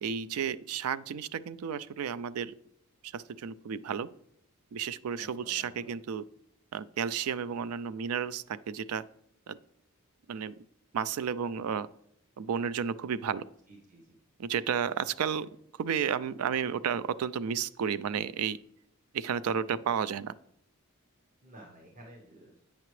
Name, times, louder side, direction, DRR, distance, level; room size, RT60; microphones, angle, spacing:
voice 1, 0.0-2.5 3.0-4.1 4.7-6.3 6.7-9.0 9.5-9.6 10.3-10.5 10.9-11.9 12.4-13.4 14.4-15.5 15.8-18.6 19.1-20.3, right 7 dB, 90° right, 16 dB, 0.4 m, -32 dB
voice 2, 5.1-5.9 13.7-14.1 15.0-15.5 19.5-19.8 21.4-22.6, right 1 dB, 40° right, -1 dB, 1.0 m, -53 dB
8.5 x 5.8 x 3.1 m, 0.73 s
head